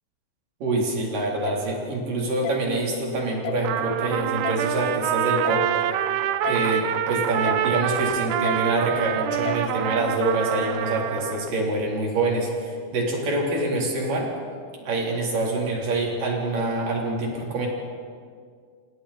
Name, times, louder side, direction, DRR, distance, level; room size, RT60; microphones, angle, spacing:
voice 1, 0.6-5.8 6.4-14.3 14.8-17.7, right 2 dB, 55° right, -1 dB, 5.1 m, -25 dB
sound 1, 1.4-1.6 2.4-2.6 3.4-3.6 4.4-4.6 5.4-5.6 6.4-6.6 7.4-7.6 8.4-8.6 9.5-9.6, left 16 dB, 80° left, 2.5 m, -31 dB
Trumpet, 3.6-11.5, right 11 dB, 90° right, 2.9 m, -26 dB
28.5 x 25.5 x 4.3 m, 2.1 s
omnidirectional pair, 4.6 m